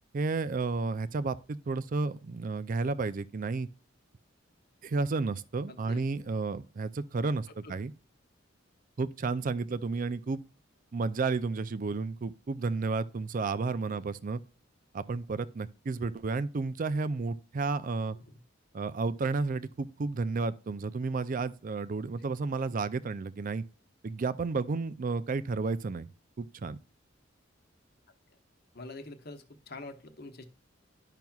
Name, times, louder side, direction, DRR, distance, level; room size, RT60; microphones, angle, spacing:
voice 1, 0.1-3.7 4.8-7.9 9.0-10.4 10.9-14.4 14.9-18.2 18.7-23.6 24.0-26.1 26.4-26.8, right 4 dB, 45° right, 0.4 m, -32 dB
voice 2, 5.7-6.0 7.6-7.7 9.7-10.0 13.9-14.0 28.7-30.4, left 2 dB, 50° left, 1.0 m, -46 dB
10.5 x 5.8 x 2.4 m
head